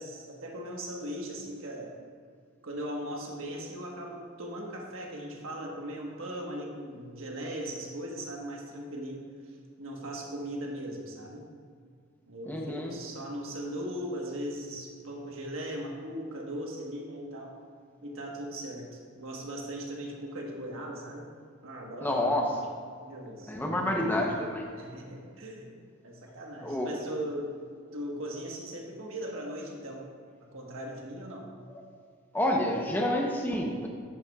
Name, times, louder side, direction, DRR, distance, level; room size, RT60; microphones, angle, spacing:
voice 1, 0.0-1.9 2.6-11.5 12.3-17.6 18.0-21.3 21.6-22.6 23.0-24.0 24.8-25.8 26.0-27.6 27.9-30.1 30.4-31.5, right 1 dB, 80° right, 0 dB, 1.4 m, -39 dB
voice 2, 12.5-12.9 22.0-22.4 23.5-24.7 26.6-27.0 32.3-33.9, left 1 dB, 10° left, 0 dB, 0.8 m, -28 dB
10.5 x 8.4 x 2.4 m, 2.1 s
head